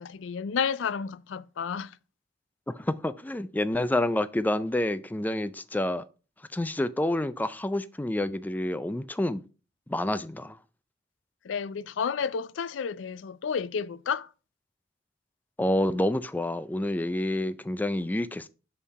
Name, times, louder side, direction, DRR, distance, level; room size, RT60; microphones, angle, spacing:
voice 1, 0.0-1.9 11.4-14.3, left 6 dB, 75° left, 0.4 m, -31 dB
voice 2, 2.7-6.0 6.5-9.4 9.9-10.6 15.6-18.5, left 1 dB, 10° left, 0.3 m, -28 dB
6.6 x 5.6 x 4.1 m
head